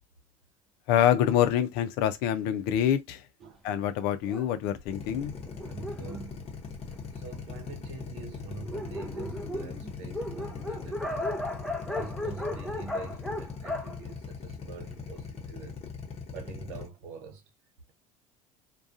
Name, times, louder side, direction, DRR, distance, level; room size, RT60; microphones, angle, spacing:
voice 1, 0.9-3.2 3.6-5.3, left 10 dB, 65° left, 0.5 m, -26 dB
Dog, 4.2-7.2 7.9-8.0 8.3-8.4 8.6-15.0, left 1 dB, ahead, 0.6 m, -36 dB
Drill, 4.9-16.9, left 5 dB, 35° left, 0.8 m, -40 dB
voice 2, 5.6-6.5 7.1-11.3 11.9-15.8 16.3-17.4, right 5 dB, 70° right, 0.8 m, -45 dB
2.4 x 2.2 x 2.5 m
hypercardioid pair, 75°, 18 cm